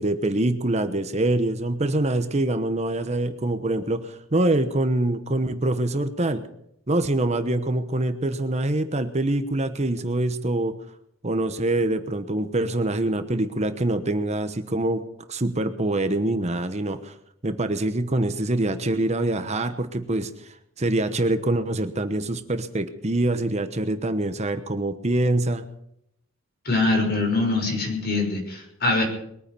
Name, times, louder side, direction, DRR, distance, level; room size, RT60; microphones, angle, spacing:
voice 1, 0.0-6.4 6.9-10.7 11.2-15.0 15.3-17.1 17.4-25.6, right 1 dB, 35° right, 9 dB, 1.0 m, -25 dB
voice 2, 26.6-29.0, left 2 dB, 50° left, 1 dB, 6.1 m, -23 dB
21.5 x 9.8 x 6.9 m, 0.75 s
head